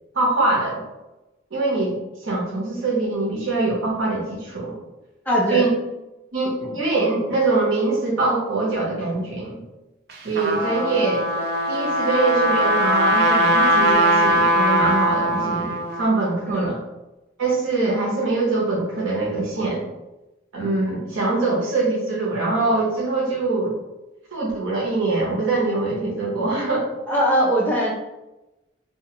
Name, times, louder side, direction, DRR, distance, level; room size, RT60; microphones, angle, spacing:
voice 1, 0.1-0.8 1.5-2.0 2.2-4.8 5.5-5.7 6.3-9.6 10.2-11.3 11.7-16.8 17.4-19.9 20.5-23.7 24.3-26.9, right 3 dB, 90° right, -4 dB, 0.8 m, -23 dB
voice 2, 5.3-5.6 16.5-16.7 27.1-27.9, equal, 10° left, -4 dB, 0.5 m, -20 dB
Trumpet, 10.1-16.1, equal, 55° right, 0.4 m, -20 dB
2.3 x 2.3 x 2.8 m, 0.99 s
head